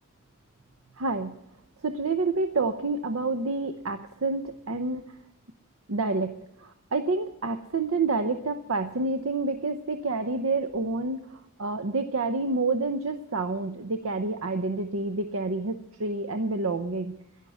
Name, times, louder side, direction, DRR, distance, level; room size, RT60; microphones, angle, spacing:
voice 1, 1.0-1.3 1.8-5.0 5.9-6.4 6.9-11.2 11.6-17.1, right 3 dB, 85° right, 7 dB, 0.8 m, -28 dB
11.0 x 11.0 x 7.9 m, 0.85 s
head